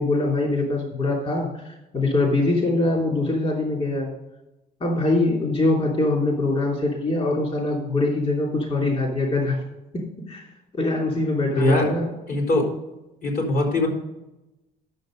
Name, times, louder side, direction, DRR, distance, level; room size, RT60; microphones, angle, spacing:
voice 1, 0.0-4.1 4.8-9.6 9.9-10.4 10.7-12.2, left 2 dB, 35° left, -1 dB, 3.0 m, -23 dB
voice 2, 11.6-11.9 12.3-12.7 13.2-13.9, left 1 dB, 55° left, 0 dB, 4.0 m, -21 dB
11.5 x 7.0 x 5.2 m, 0.96 s
cardioid pair, 110°, 17 cm